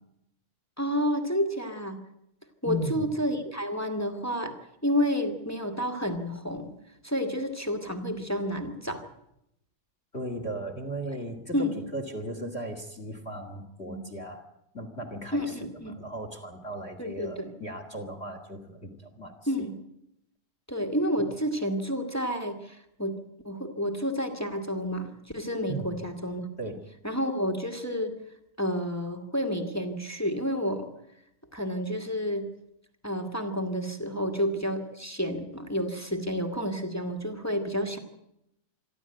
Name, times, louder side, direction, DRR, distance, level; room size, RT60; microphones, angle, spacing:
voice 1, 0.8-2.0 2.6-4.5 4.8-6.7 7.0-9.0 11.5-11.8 13.9-14.0 15.3-15.9 17.0-17.5 19.5-19.7 20.7-23.2 23.4-26.4 27.0-28.1 28.6-30.9 31.5-32.5 33.0-38.0, equal, 5° left, 6 dB, 1.4 m, -30 dB
voice 2, 2.6-3.1 10.1-14.4 14.7-15.6 15.9-19.3 21.2-21.3 25.7-25.9 26.6-26.8, right 1 dB, 20° left, 7 dB, 2.1 m, -36 dB
26.5 x 12.0 x 9.1 m, 0.79 s
omnidirectional pair, 3.7 m